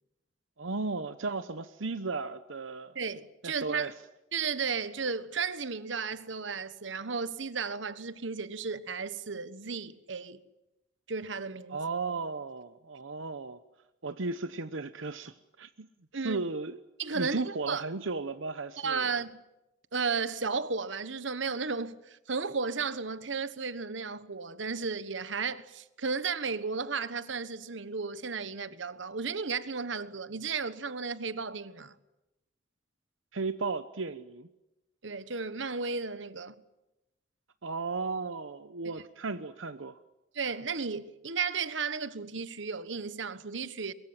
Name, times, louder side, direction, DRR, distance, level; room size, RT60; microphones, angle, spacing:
voice 1, 0.6-3.0 3.4-3.9 11.7-13.6 14.0-15.9 16.1-16.8 17.1-19.1 33.3-34.5 37.6-40.0, right 3 dB, 90° right, 0.9 m, -35 dB
voice 2, 2.9-3.9 4.3-10.4 11.1-11.8 16.1-16.4 17.0-17.8 18.8-19.4 19.9-32.0 35.0-36.5 38.8-38.9 40.3-43.9, right 5 dB, 70° right, 1.3 m, -34 dB
23.5 x 22.5 x 9.1 m
head